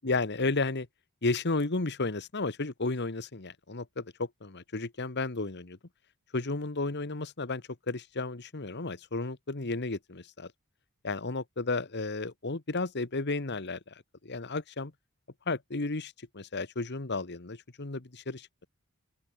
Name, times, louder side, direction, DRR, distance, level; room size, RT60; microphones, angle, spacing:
voice 1, 0.0-0.9 1.2-5.8 6.3-10.5 11.0-14.9 15.5-18.5, left 3 dB, 50° left, 1.4 m, -33 dB
open air
head